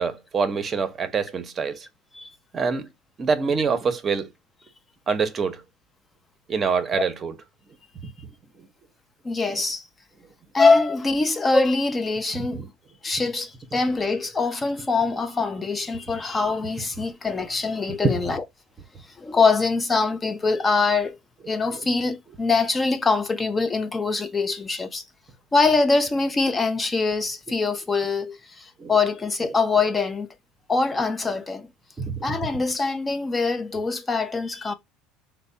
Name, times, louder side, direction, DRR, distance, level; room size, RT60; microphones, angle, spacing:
voice 1, 0.0-1.8 2.5-2.9 3.2-4.3 5.1-5.6 6.5-7.3 12.5-12.7 18.0-18.1 28.8-28.9 32.0-32.1, right 5 dB, 30° right, 0.6 m, -25 dB
voice 2, 9.2-9.9 10.5-12.6 13.0-18.4 19.2-21.2 21.5-25.0 25.5-30.3 30.7-31.7 32.2-34.7, left 4 dB, 20° left, 0.3 m, -23 dB
3.3 x 2.0 x 3.8 m
supercardioid pair, 115°, 0 cm